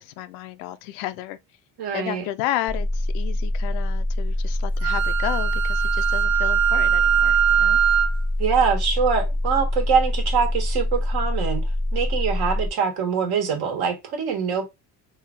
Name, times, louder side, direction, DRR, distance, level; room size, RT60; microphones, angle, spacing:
voice 1, 0.0-1.4 1.9-7.8, left 13 dB, 85° left, 0.6 m, -32 dB
voice 2, 1.8-2.2 8.4-11.6 11.9-14.7, right 6 dB, 65° right, 1.4 m, -24 dB
sound 1, 2.7-12.7, left 1 dB, 5° right, 0.6 m, -25 dB
Wind instrument woodwind instrument, 4.8-8.2, right 10 dB, 80° right, 0.6 m, -21 dB
3.1 x 2.4 x 3.6 m
supercardioid pair, 75°, 40 cm